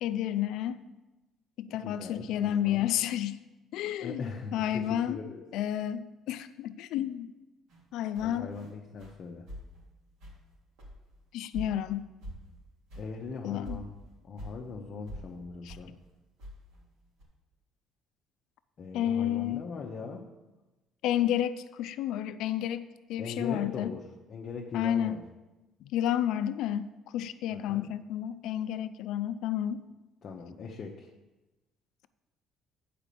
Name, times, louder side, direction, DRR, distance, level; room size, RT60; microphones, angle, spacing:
voice 1, 0.0-0.8 1.6-3.4 3.7-5.2 5.5-7.3 7.9-8.5 11.3-12.1 13.4-13.8 15.6-15.8 18.9-19.7 21.0-23.9 24.7-25.2 25.8-29.8, left 11 dB, 75° left, 12 dB, 0.5 m, -31 dB
voice 2, 1.7-2.9 4.0-5.4 8.2-9.5 13.0-13.9 14.2-15.9 18.8-20.2 23.2-24.0 24.3-25.2 27.5-27.9 30.2-31.1, left 4 dB, 45° left, 0 dB, 0.9 m, -40 dB
sound 1, 7.7-7.8 8.1-8.7 9.0-9.2 9.5-9.8 10.2-10.5 10.8-11.2 11.5-11.9 12.2-12.6 12.9-13.1 13.4-13.5 13.6-14.6 15.1-15.3 15.7-15.9 16.4-16.8 17.2-17.3, equal, 85° right, 3.2 m, -44 dB
8.9 x 5.1 x 6.8 m, 1.1 s
cardioid pair, 125°, 0 cm